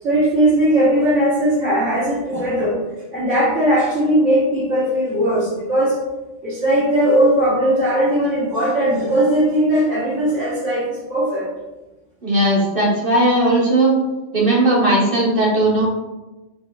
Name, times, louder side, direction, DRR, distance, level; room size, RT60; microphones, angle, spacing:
voice 1, 0.0-2.8 3.1-6.0 6.4-11.5, right 1 dB, 80° right, -10 dB, 1.5 m, -18 dB
voice 2, 12.2-14.0 14.3-15.8, right 1 dB, 50° right, -5 dB, 1.0 m, -17 dB
4.3 x 3.4 x 2.2 m, 1.1 s
omnidirectional pair, 1.3 m